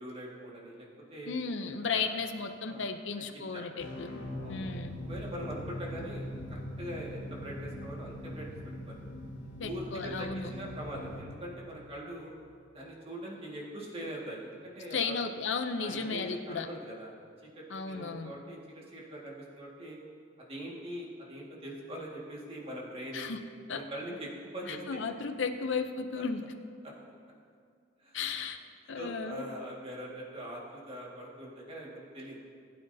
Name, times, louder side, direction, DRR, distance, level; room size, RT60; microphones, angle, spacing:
voice 1, 0.0-1.3 1.9-2.1 2.6-2.9 3.5-3.7 4.4-4.7 5.0-6.2 6.5-8.6 8.9-9.0 9.6-12.3 12.7-15.2 15.8-17.1 17.6-20.0 20.4-23.3 23.7-25.0 26.8-26.9 28.0-28.5 29.0-32.4, right 1 dB, 30° right, -4 dB, 1.8 m, -42 dB
voice 2, 1.3-4.1 4.5-5.0 9.6-10.5 14.9-16.7 17.7-18.4 23.1-23.4 23.7-23.8 24.7-26.4 28.1-28.6 28.9-29.4, left 5 dB, 65° left, 6 dB, 0.6 m, -34 dB
sound 1, 3.8-12.5, left 1 dB, 85° left, 2.3 m, -42 dB
19.5 x 8.7 x 2.7 m, 2.2 s
head